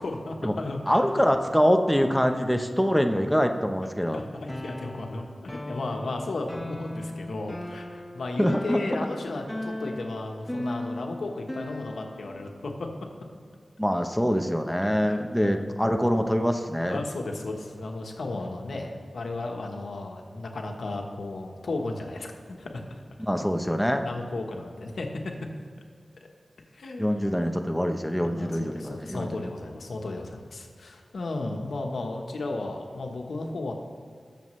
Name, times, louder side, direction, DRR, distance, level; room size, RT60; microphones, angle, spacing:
voice 1, 0.0-1.0 4.1-12.9 15.0-15.7 16.9-23.0 23.9-25.3 26.7-27.3 28.2-33.7, left 2 dB, 90° left, 2 dB, 1.2 m, -34 dB
voice 2, 0.9-4.2 8.4-9.0 13.8-17.0 23.3-24.1 27.0-29.4, equal, ahead, 5 dB, 0.8 m, -24 dB
sound 1, 4.5-12.4, left 1 dB, 20° left, 1.3 m, -37 dB
20.0 x 7.1 x 3.2 m, 2.1 s
wide cardioid pair, 65°, 0 cm